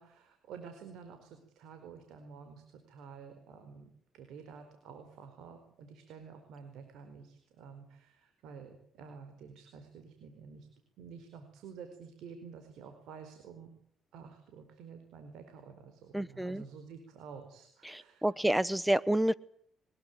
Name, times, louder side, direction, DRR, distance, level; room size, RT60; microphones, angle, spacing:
voice 1, 0.0-10.7 11.0-13.7 14.1-18.3, right 6 dB, 85° right, 7 dB, 4.6 m, -50 dB
voice 2, 16.1-16.6 17.8-19.3, right 1 dB, 5° right, 19 dB, 1.2 m, -29 dB
23.0 x 21.0 x 9.3 m, 0.63 s
cardioid pair, 90°, 0 cm